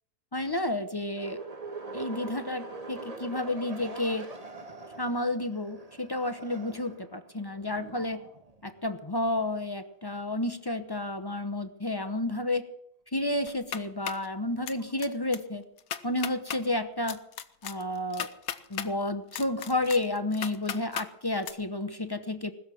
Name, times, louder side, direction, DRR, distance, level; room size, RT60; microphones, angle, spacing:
voice 1, 0.3-1.4 1.9-4.3 5.0-8.2 8.6-12.6 13.1-15.6 16.0-17.2 17.6-18.3 18.7-22.5, left 2 dB, 25° left, 10 dB, 0.6 m, -31 dB
sound 1, 1.2-8.9 14.1-15.0, right 3 dB, 25° right, 1.3 m, -43 dB
sound 2, 13.5-14.3 14.7-15.1 15.3-15.4 15.8-16.6 17.1-18.9 19.3-21.1 21.4-21.5, left 9 dB, 75° left, 1.3 m, -36 dB
20.0 x 7.0 x 9.2 m, 0.75 s
omnidirectional pair, 1.6 m